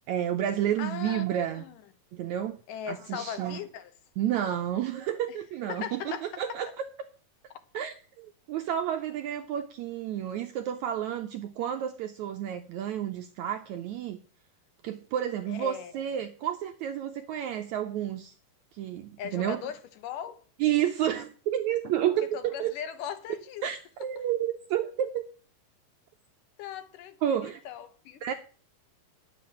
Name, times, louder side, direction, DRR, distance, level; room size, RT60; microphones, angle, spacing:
voice 1, 0.1-1.6 2.1-2.6 2.9-3.6 4.2-6.9 7.7-14.2 14.8-18.3 18.7-19.6 20.6-22.7 23.6-25.2 27.2-27.6 28.2-28.3, right 10 dB, 80° right, 1.7 m, -30 dB
voice 2, 0.8-1.2 1.5-1.8 2.7-3.9 5.7-6.4 15.5-15.9 19.2-20.4 22.3-23.6 26.6-27.4 27.7-28.2, left 9 dB, 75° left, 2.5 m, -38 dB
10.5 x 7.7 x 7.2 m
omnidirectional pair, 4.0 m